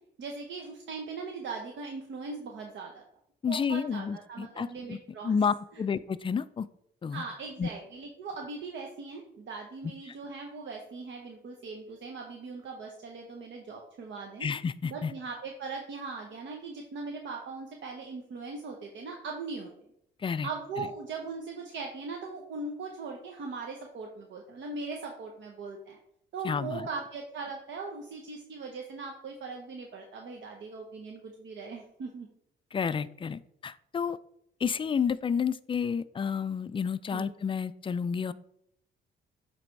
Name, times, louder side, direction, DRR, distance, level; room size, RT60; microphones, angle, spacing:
voice 1, 0.2-3.0 3.5-5.3 5.7-5.8 7.1-14.5 14.9-19.7 20.4-26.0 26.3-32.3 37.1-37.3, right 4 dB, 70° right, 1 dB, 1.0 m, -40 dB
voice 2, 3.4-5.0 5.2-6.7 7.0-7.2 7.6-7.7 14.4-15.1 20.2-20.5 20.8-20.9 26.4-26.9 32.7-34.2 34.6-38.3, left 6 dB, 25° left, 15 dB, 0.3 m, -30 dB
7.9 x 3.4 x 4.6 m, 0.74 s
cardioid pair, 90°, 20 cm